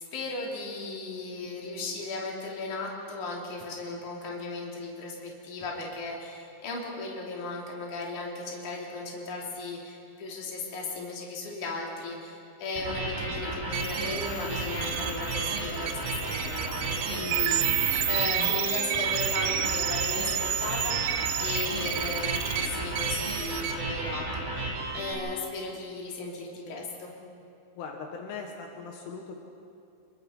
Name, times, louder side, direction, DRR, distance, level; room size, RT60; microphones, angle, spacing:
voice 1, 0.1-24.7 24.9-27.1, left 3 dB, 40° left, -2 dB, 3.9 m, -36 dB
sound 1, 12.8-25.1, right 2 dB, 50° right, 9.3 m, -34 dB
sound 2, 13.7-23.7, right 12 dB, 75° right, 3.3 m, -30 dB
voice 2, 27.8-29.4, left 5 dB, 75° left, 2 dB, 4.0 m, -39 dB
28.0 x 21.5 x 5.6 m, 2.5 s
omnidirectional pair, 5.8 m